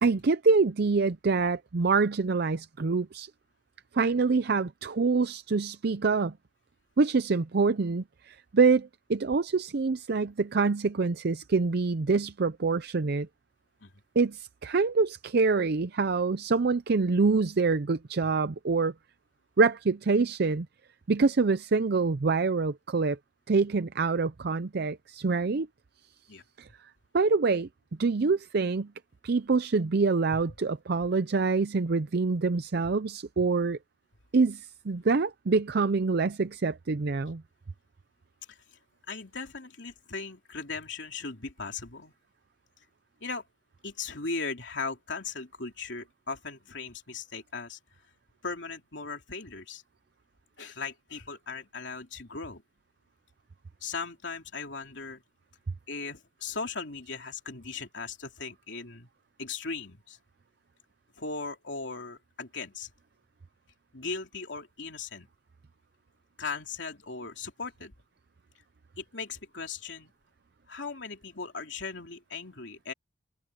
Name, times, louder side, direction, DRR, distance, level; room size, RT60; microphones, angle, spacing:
voice 1, 0.0-3.3 3.9-6.3 7.0-13.3 14.2-18.9 19.6-20.7 21.1-23.2 23.5-25.7 26.6-26.7 27.1-27.7 28.0-28.9 29.2-33.8 34.3-37.4, right 4 dB, 60° right, 0.6 m, -25 dB
voice 2, 39.1-42.1 43.2-43.4 43.8-47.8 48.4-49.8 50.6-52.6 53.8-55.2 55.9-59.1 59.4-60.2 61.2-62.9 63.9-65.3 66.4-67.9 69.0-70.1 70.7-72.9, left 4 dB, 75° left, 3.2 m, -38 dB
head